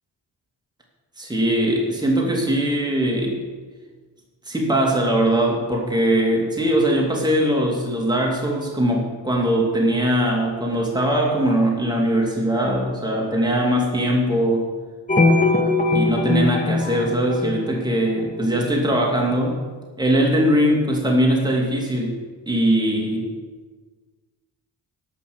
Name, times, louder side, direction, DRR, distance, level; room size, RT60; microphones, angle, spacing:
voice 1, 1.2-3.4 4.5-14.6 15.9-19.6 20.0-22.2 22.5-23.3, right 1 dB, 10° right, -1 dB, 2.7 m, -21 dB
sound 1, 15.1-18.2, left 2 dB, 20° left, 1.6 m, -20 dB
12.5 x 5.7 x 7.9 m, 1.4 s
cardioid pair, 55°, 41 cm